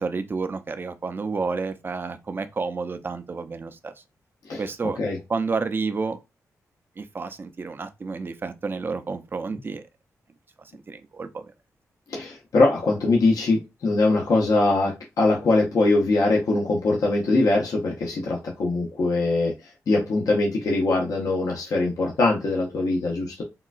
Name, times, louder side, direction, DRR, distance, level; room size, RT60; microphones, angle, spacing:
voice 1, 0.0-3.9 4.6-5.0 5.3-6.2 7.0-9.8 10.7-11.5, right 4 dB, 35° right, 0.4 m, -30 dB
voice 2, 12.1-19.5 19.9-23.4, left 2 dB, 80° left, 0.8 m, -22 dB
3.8 x 2.3 x 2.4 m
cardioid pair, 85°, 6 cm